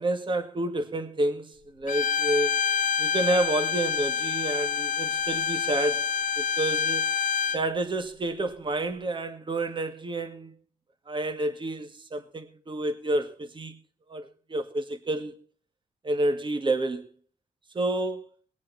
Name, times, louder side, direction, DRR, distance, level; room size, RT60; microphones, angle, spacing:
voice 1, 0.0-2.7 3.0-6.1 6.4-7.1 7.5-10.5 11.1-13.8 14.1-15.3 16.0-17.1 17.7-18.2, right 2 dB, 35° right, 2.1 m, -29 dB
Bowed string instrument, 1.9-7.6, left 7 dB, 70° left, 0.7 m, -27 dB
21.0 x 7.5 x 4.2 m
cardioid pair, 80°, 14 cm